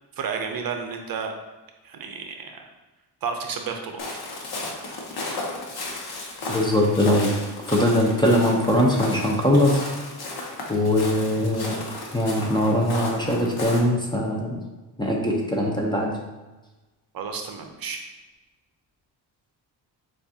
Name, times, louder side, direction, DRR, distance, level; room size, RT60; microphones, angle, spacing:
voice 1, 0.2-1.3 1.8-2.6 3.2-4.0 17.1-18.0, right 5 dB, 60° right, 4 dB, 0.6 m, -31 dB
Walk footsteps, 4.0-13.8, left 2 dB, 65° left, 1.0 m, -34 dB
voice 2, 6.5-7.3 7.7-9.8 10.7-11.8 12.1-14.6 15.0-16.2, left 1 dB, 10° left, -1 dB, 0.5 m, -21 dB
6.9 x 2.5 x 2.7 m, 1.2 s
wide cardioid pair, 135°, 41 cm